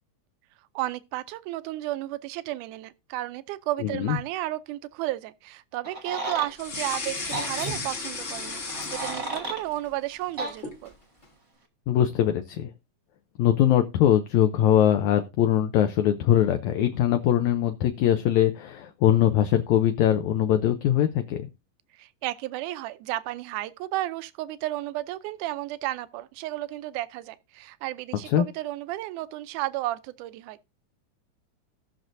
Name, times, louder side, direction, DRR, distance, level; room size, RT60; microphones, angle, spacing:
voice 1, 0.8-10.9 22.0-30.6, right 16 dB, 80° right, 2.0 m, -33 dB
voice 2, 3.8-4.2 11.9-12.7 13.4-21.5 28.2-28.4, left 11 dB, 75° left, 1.7 m, -22 dB
sound 1, 5.8-6.5 7.3-7.5 8.7-9.6 10.4-10.5, right 2 dB, 40° right, 1.3 m, -33 dB
sound 2, 6.5-9.8 10.1-10.8, left 3 dB, 55° left, 0.8 m, -34 dB
Drip, 7.2-11.3, right 2 dB, 25° left, 1.0 m, -42 dB
18.0 x 6.2 x 2.6 m
omnidirectional pair, 3.9 m